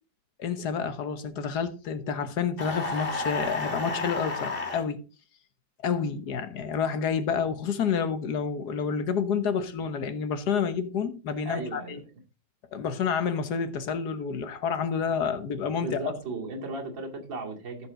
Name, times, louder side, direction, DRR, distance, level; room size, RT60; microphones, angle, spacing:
voice 1, 0.4-5.0 5.8-12.0 12.7-16.0, left 6 dB, 60° left, 1.6 m, -29 dB
sound 1, 2.6-4.8, left 3 dB, 30° left, 1.7 m, -31 dB
voice 2, 11.4-12.0 15.8-17.9, right 3 dB, 75° right, 3.1 m, -35 dB
14.5 x 5.9 x 3.8 m
omnidirectional pair, 2.1 m